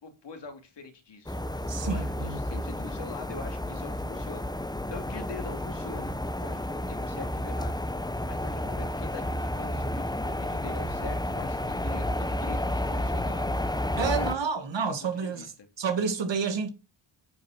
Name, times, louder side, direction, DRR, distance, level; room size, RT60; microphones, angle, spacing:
voice 1, 0.0-7.8 8.2-13.5 14.1-15.5, left 4 dB, 60° left, 2.8 m, -44 dB
sound 1, 1.3-14.4, left 1 dB, 10° left, 1.2 m, -31 dB
voice 2, 1.7-2.4 14.0-15.5 15.8-16.7, right 5 dB, 65° right, 2.1 m, -29 dB
9.4 x 5.4 x 6.0 m
supercardioid pair, 45°, 48 cm